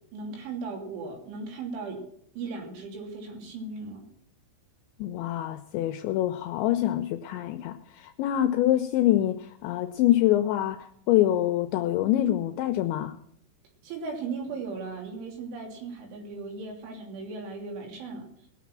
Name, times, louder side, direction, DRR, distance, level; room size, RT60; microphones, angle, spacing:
voice 1, 0.1-2.0 2.4-4.1 13.8-18.5, right 4 dB, 70° right, 1 dB, 5.4 m, -37 dB
voice 2, 5.0-13.2, left 13 dB, 80° left, 8 dB, 2.7 m, -25 dB
20.5 x 7.1 x 6.1 m, 0.70 s
omnidirectional pair, 5.9 m